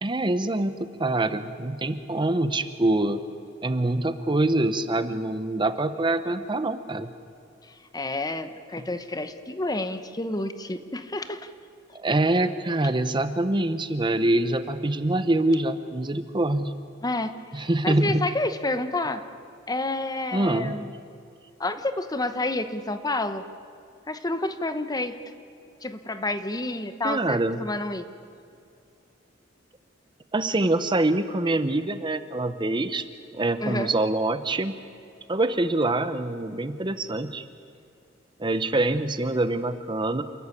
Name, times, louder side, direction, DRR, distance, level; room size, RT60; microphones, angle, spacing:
voice 1, 0.0-3.2 3.6-7.1 11.9-16.7 17.5-18.2 20.3-20.9 27.0-27.6 30.3-33.0 33.3-34.7 35.3-37.4 38.4-40.2, right 2 dB, 25° right, 11 dB, 0.8 m, -25 dB
voice 2, 7.9-11.5 17.0-19.2 19.7-20.9 21.6-23.4 24.1-25.2 25.8-28.1 33.6-33.9, left 2 dB, 20° left, 10 dB, 1.0 m, -29 dB
28.0 x 14.0 x 9.8 m, 2.5 s
head